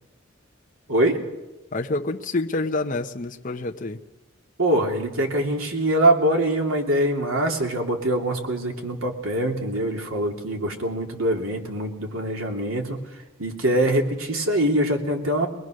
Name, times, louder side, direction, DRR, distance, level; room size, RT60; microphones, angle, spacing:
voice 1, 1.7-4.0, left 2 dB, 40° left, 1 dB, 0.9 m, -27 dB
voice 2, 4.6-13.0 13.4-15.5, right 1 dB, 90° right, 2 dB, 3.0 m, -23 dB
22.5 x 21.0 x 6.5 m, 1.0 s
head